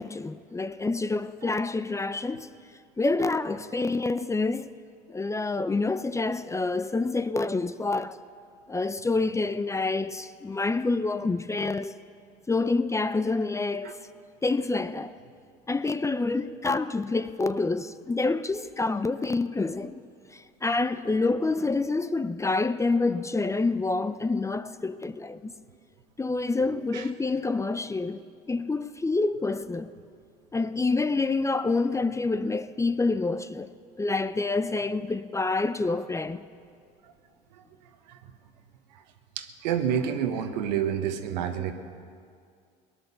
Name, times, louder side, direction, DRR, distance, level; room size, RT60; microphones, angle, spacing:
voice 1, 0.0-2.5 3.0-4.7 5.1-8.2 8.7-11.9 12.5-14.0 14.4-15.2 15.7-20.0 20.3-25.5 26.2-28.2 28.5-29.9 30.5-33.7 34.0-36.4, left 3 dB, 15° left, 0.5 m, -27 dB
voice 2, 26.7-27.1 38.1-38.2 39.4-41.7, right 8 dB, 85° right, 1.2 m, -29 dB
19.0 x 10.5 x 6.9 m
hypercardioid pair, 80°, 21 cm